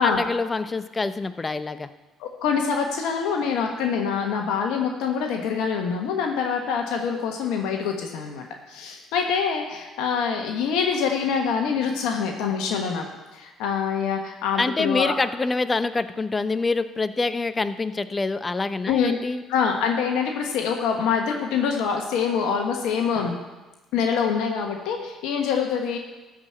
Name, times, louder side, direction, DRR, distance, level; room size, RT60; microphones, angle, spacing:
voice 1, 0.0-1.9 14.6-19.4, left 3 dB, 25° left, 12 dB, 0.7 m, -26 dB
voice 2, 2.2-13.1 13.3-15.1 18.9-19.1 19.5-23.4 23.9-26.0, left 6 dB, 75° left, 2 dB, 1.2 m, -25 dB
13.5 x 5.0 x 8.7 m, 1.1 s
hypercardioid pair, 65°, 0 cm